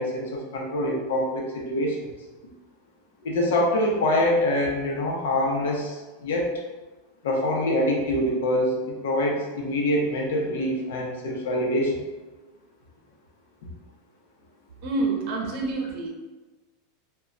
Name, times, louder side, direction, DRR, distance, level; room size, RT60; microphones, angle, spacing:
voice 1, 0.0-2.1 3.2-6.5 7.2-11.9, left 1 dB, 85° left, -1 dB, 0.6 m, -25 dB
voice 2, 14.8-16.1, right 3 dB, 55° right, 0 dB, 0.6 m, -27 dB
2.1 x 2.1 x 3.7 m, 1.2 s
supercardioid pair, 135°, 0 cm